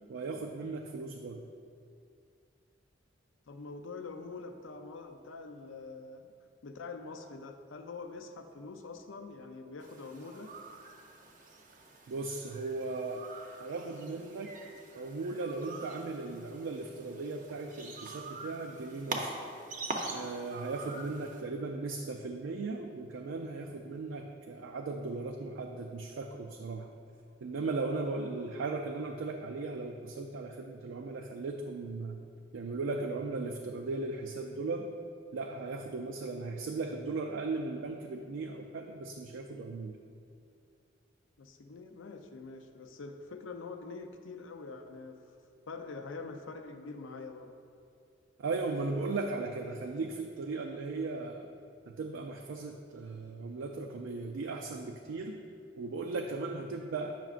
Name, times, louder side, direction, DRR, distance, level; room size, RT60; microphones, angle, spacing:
voice 1, 0.1-1.4 12.1-13.2 13.6-14.5 14.9-19.4 20.0-26.9 27.4-32.2 32.5-34.9 35.3-40.0 48.4-51.5 51.9-55.4 55.8-57.2, right 3 dB, 85° right, 3 dB, 0.4 m, -37 dB
voice 2, 3.5-6.3 6.6-10.5 41.4-45.2 45.7-47.5, left 4 dB, 80° left, 7 dB, 0.5 m, -45 dB
sound 1, 9.8-21.4, right 2 dB, 45° right, 0.6 m, -44 dB
9.0 x 5.9 x 2.4 m, 2.4 s
head